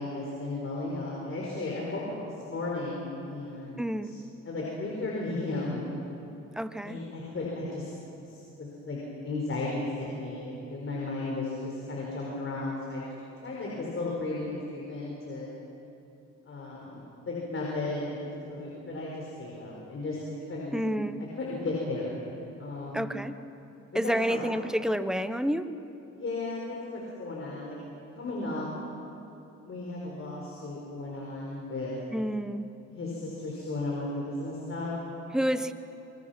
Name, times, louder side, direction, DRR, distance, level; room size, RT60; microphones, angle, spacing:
voice 1, 0.0-2.0 2.5-4.2 4.4-5.8 6.8-7.9 8.3-9.0 9.2-13.0 13.4-15.5 16.5-18.2 18.5-20.2 20.5-20.8 21.4-22.1 22.6-23.1 23.9-24.4 26.1-27.8 28.1-28.7 29.6-32.0 32.9-34.9, left 2 dB, 45° left, -3 dB, 5.4 m, -35 dB
voice 2, 3.8-4.1 6.6-7.0 20.7-21.2 22.9-23.3 23.9-25.7 32.1-32.7 35.3-35.7, equal, ahead, 10 dB, 1.1 m, -29 dB
25.5 x 24.5 x 6.1 m, 2.9 s
cardioid pair, 90°, 30 cm